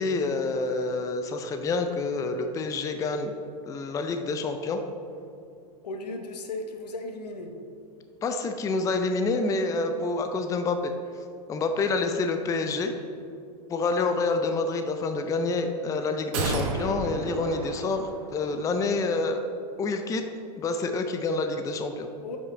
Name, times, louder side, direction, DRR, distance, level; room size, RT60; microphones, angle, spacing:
voice 1, 0.0-3.3 3.6-4.8 8.2-10.9 11.5-13.0 13.7-19.4 19.8-20.2 20.6-22.1, left 3 dB, 15° left, 7 dB, 0.4 m, -27 dB
voice 2, 5.8-7.5 22.2-22.4, left 2 dB, 80° left, 4 dB, 1.0 m, -36 dB
sound 1, 16.3-18.7 19.0-19.1, right 3 dB, 55° right, 1.2 m, -32 dB
9.3 x 5.5 x 3.3 m, 2.5 s
hypercardioid pair, 110°, 20 cm